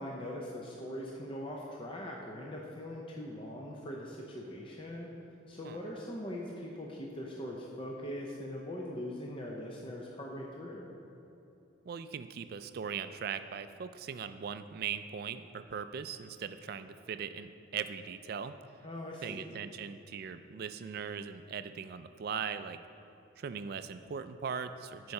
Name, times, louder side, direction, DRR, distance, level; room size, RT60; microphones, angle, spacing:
voice 1, 0.0-5.1 5.5-10.9 18.8-19.5, left 1 dB, 25° left, -2 dB, 0.6 m, -41 dB
voice 2, 11.8-18.5 19.2-22.8 23.4-25.1, right 7 dB, 50° right, 11 dB, 0.3 m, -39 dB
8.7 x 4.7 x 5.4 m, 2.9 s
head